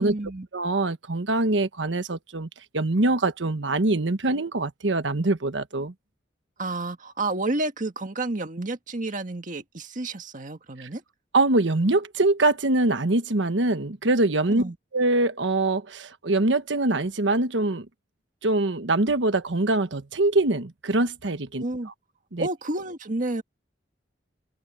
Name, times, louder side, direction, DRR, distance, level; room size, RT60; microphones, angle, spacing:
voice 1, 0.0-0.5 6.6-11.0 14.5-14.8 21.6-21.9 22.4-23.4, right 2 dB, 45° right, 1.8 m, -30 dB
voice 2, 0.5-2.5 2.7-5.9 11.3-14.6 14.9-17.9 18.4-21.6 22.3-22.5, right 2 dB, 90° right, 1.2 m, -23 dB
open air
head